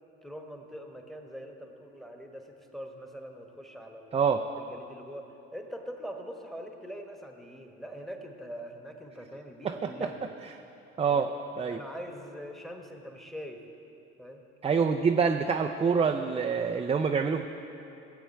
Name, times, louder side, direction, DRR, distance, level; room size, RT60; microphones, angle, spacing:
voice 1, 0.2-4.2 4.6-10.2 11.1-11.3 11.7-13.6 14.2-14.4, equal, ahead, 4 dB, 1.3 m, -43 dB
voice 2, 11.0-11.3 11.6-11.8 14.6-17.4, right 6 dB, 20° right, 4 dB, 0.5 m, -26 dB
16.5 x 8.0 x 4.5 m, 2.8 s
figure-of-eight pair, 50°, 34 cm